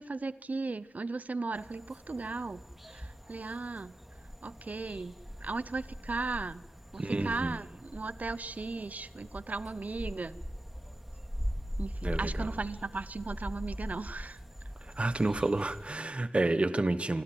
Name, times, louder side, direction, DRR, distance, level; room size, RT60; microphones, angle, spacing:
voice 1, 0.0-2.6 2.9-4.0 4.4-5.1 5.4-6.6 6.9-10.4 11.8-14.4, right 3 dB, 60° right, 0.8 m, -37 dB
sound 1, 1.5-16.0, equal, 5° right, 2.3 m, -41 dB
voice 2, 7.0-7.7 12.0-12.5 14.8-17.2, right 2 dB, 45° right, 1.3 m, -30 dB
27.0 x 12.5 x 9.1 m
cardioid pair, 45°, 3 cm